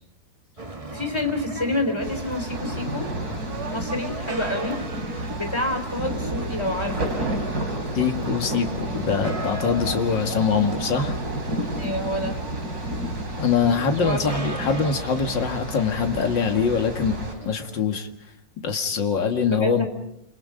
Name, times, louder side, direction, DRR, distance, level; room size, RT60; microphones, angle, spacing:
sound 1, 0.6-17.8, right 2 dB, 20° right, 1.5 m, -39 dB
voice 1, 0.9-3.1 3.7-4.8 5.1-7.2 11.8-12.4 14.0-14.2 19.5-19.9, left 1 dB, 15° left, 5 dB, 4.1 m, -28 dB
sound 2, 2.0-17.3, right 1 dB, 55° right, 4.7 m, -31 dB
Engine / Mechanical fan, 2.4-16.4, equal, 50° left, 6.3 m, -41 dB
voice 2, 7.9-11.2 13.4-18.1 18.6-19.9, left 6 dB, 85° left, 5 dB, 2.6 m, -23 dB
29.5 x 28.0 x 5.2 m, 0.77 s
omnidirectional pair, 1.9 m